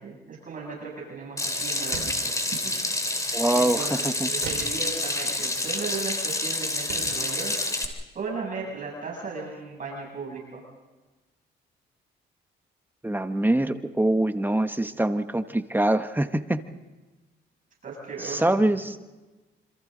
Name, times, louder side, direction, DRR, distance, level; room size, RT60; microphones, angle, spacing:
voice 1, 0.0-2.3 2.6-2.8 3.5-7.5 8.1-10.6 17.8-18.6, right 4 dB, 40° right, -2 dB, 7.8 m, -36 dB
Water tap faucet / Sink (filling or washing), 1.4-7.8, left 2 dB, 15° left, 3.0 m, -28 dB
sound 1, 1.9-2.3 4.4-4.9 6.2-6.3 6.9-7.2, right 7 dB, 85° right, 5.3 m, -37 dB
voice 2, 3.3-4.3 13.0-16.6 18.2-18.9, right 1 dB, 10° right, 8 dB, 1.2 m, -24 dB
27.0 x 26.5 x 4.0 m, 1.2 s
cardioid pair, 90°, 20 cm